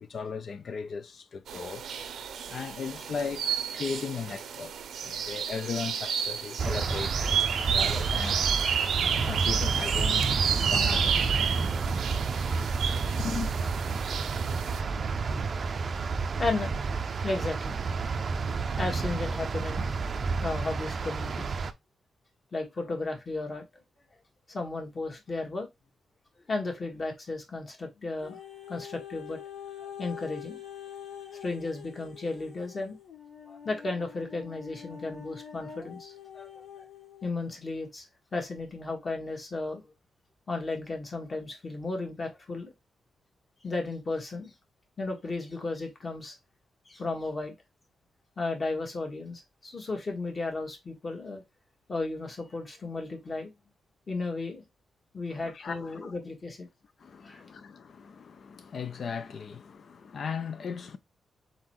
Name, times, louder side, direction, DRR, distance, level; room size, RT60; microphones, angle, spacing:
voice 1, 0.0-1.8 2.5-4.7 5.0-7.4 7.7-8.4 9.1-11.3 13.2-13.5 55.3-56.1 57.0-61.0, left 5 dB, 50° left, 0.5 m, -37 dB
sound 1, 1.5-14.8, right 7 dB, 80° right, 0.7 m, -31 dB
sound 2, 6.6-21.7, right 4 dB, 40° right, 0.5 m, -30 dB
voice 2, 16.4-16.8 17.2-17.8 18.8-19.9 20.1-21.5 22.5-23.6 24.5-25.7 26.5-28.4 28.7-29.4 29.8-30.6 31.4-32.9 33.5-36.6 37.2-39.9 40.5-42.7 43.6-44.5 45.0-46.4 46.8-47.5 48.4-51.4 51.9-53.5 54.1-54.6 55.1-56.7 57.2-57.4, left 3 dB, 30° left, 1.5 m, -34 dB
sound 3, 28.2-37.3 38.0-38.1, left 8 dB, 80° left, 2.4 m, -45 dB
4.2 x 4.0 x 3.0 m
wide cardioid pair, 150°, 0 cm